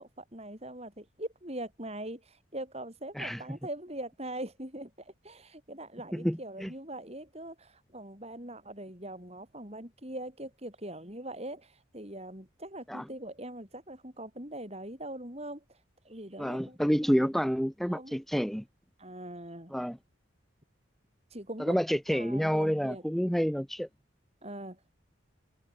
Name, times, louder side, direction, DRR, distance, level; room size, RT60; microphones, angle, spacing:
voice 1, 0.0-15.6 16.0-16.8 17.9-18.1 19.0-19.7 21.3-21.7 22.1-23.0 24.4-24.8, right 1 dB, 30° right, 5.9 m, -42 dB
voice 2, 6.1-6.7 12.9-13.1 16.4-18.6 19.7-20.0 21.6-23.9, equal, ahead, 0.8 m, -29 dB
head